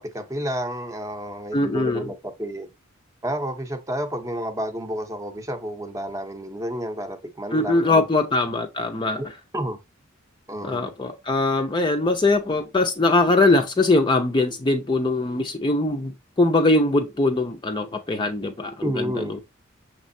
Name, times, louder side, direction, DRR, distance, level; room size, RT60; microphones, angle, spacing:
voice 1, 0.0-2.7 3.2-8.1 9.5-9.8 10.5-10.9 18.8-19.4, equal, 15° right, 0.7 m, -30 dB
voice 2, 1.5-2.1 7.5-9.2 10.6-19.4, left 2 dB, 25° left, 0.5 m, -22 dB
6.5 x 3.1 x 2.6 m
head